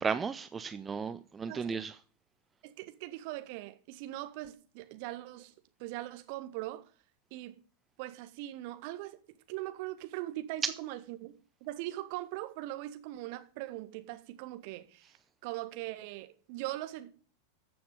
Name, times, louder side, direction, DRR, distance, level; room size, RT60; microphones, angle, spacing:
voice 1, 0.0-2.0 10.6-10.7, right 5 dB, 15° right, 0.5 m, -34 dB
voice 2, 2.6-5.5 5.8-6.8 7.3-7.6 8.0-9.2 9.5-11.3 11.6-15.2 15.4-17.1, right 16 dB, 45° right, 1.5 m, -40 dB
14.5 x 7.0 x 5.3 m
figure-of-eight pair, 90°, 0 cm